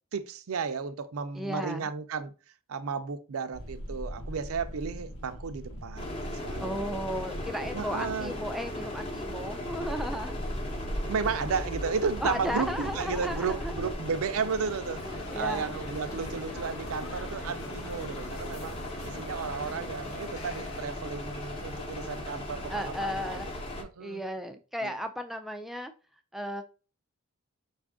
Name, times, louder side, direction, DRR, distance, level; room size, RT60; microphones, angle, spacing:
voice 1, 0.1-2.3 2.7-7.0 7.7-8.3 11.1-18.8 19.0-23.4 23.8-24.2 24.8-24.9, right 5 dB, 75° right, 0.5 m, -33 dB
voice 2, 1.3-1.9 6.6-10.3 12.2-13.9 15.0-15.8 22.7-23.6 24.0-25.9 26.3-26.6, equal, ahead, 0.3 m, -35 dB
sound 1, 3.5-13.9, equal, 90° left, 1.1 m, -40 dB
sound 2, 6.0-23.8, left 1 dB, 25° left, 0.9 m, -38 dB
Barcelona street ambience small cafeteria outdoors, 14.9-20.8, left 3 dB, 70° left, 0.7 m, -45 dB
5.3 x 2.5 x 3.5 m
head